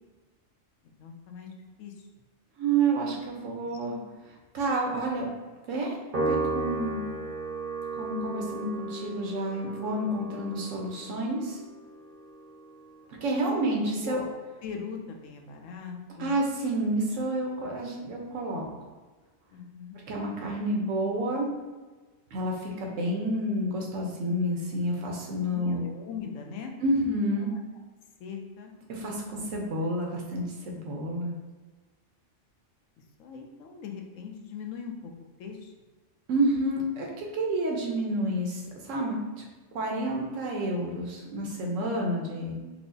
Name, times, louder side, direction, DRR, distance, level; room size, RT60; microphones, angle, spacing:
voice 1, 0.8-1.5 1.8-2.1 13.5-13.7 14.0-14.2 14.6-16.3 19.5-20.0 25.4-26.7 27.4-27.6 28.2-28.7 33.0-35.1 35.4-35.7, left 6 dB, 85° left, 3 dB, 0.9 m, -40 dB
voice 2, 2.6-4.0 4.5-5.3 5.7-6.0 6.3-7.0 7.9-11.6 13.2-14.2 16.2-18.7 20.1-21.5 22.3-25.8 26.8-27.5 28.9-31.4 36.3-39.2 39.7-42.5, right 1 dB, 85° right, -1 dB, 1.1 m, -29 dB
Piano, 6.1-12.7, right 2 dB, 50° right, 0.8 m, -34 dB
4.5 x 2.0 x 2.6 m, 1.3 s
omnidirectional pair, 1.3 m